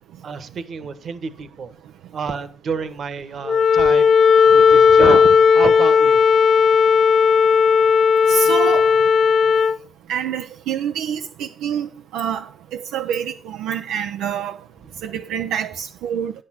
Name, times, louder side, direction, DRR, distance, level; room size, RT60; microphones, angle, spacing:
voice 1, 0.2-1.7 2.1-4.1 4.5-6.2 14.8-15.0, right 5 dB, 60° right, 1.2 m, -28 dB
Wind instrument woodwind instrument, 3.5-9.8, left 6 dB, 60° left, 0.5 m, -14 dB
voice 2, 8.3-9.0 10.1-14.6 15.0-16.3, right 9 dB, 90° right, 0.5 m, -26 dB
9.6 x 6.7 x 5.8 m
supercardioid pair, 70°, 0 cm